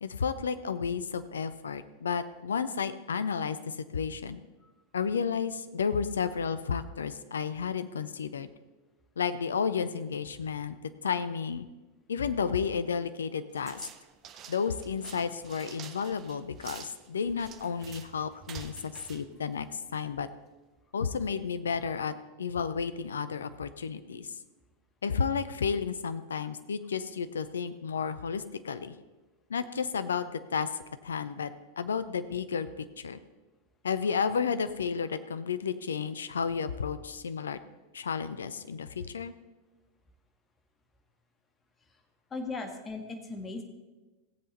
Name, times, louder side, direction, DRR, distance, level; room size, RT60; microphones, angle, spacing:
voice 1, 0.0-4.4 4.9-8.5 9.2-10.8 11.0-11.7 12.1-13.8 14.5-19.7 19.9-20.3 20.9-24.3 25.0-28.9 29.5-30.7 31.0-31.5 31.8-33.2 33.8-37.6 37.9-39.3, left 6 dB, 70° left, 12 dB, 0.6 m, -32 dB
sound 1, 13.5-20.1, right 8 dB, 30° right, 0.8 m, -48 dB
voice 2, 42.3-43.6, left 3 dB, 20° left, 4 dB, 1.6 m, -37 dB
17.0 x 7.8 x 4.1 m, 1.2 s
figure-of-eight pair, 90°, 0 cm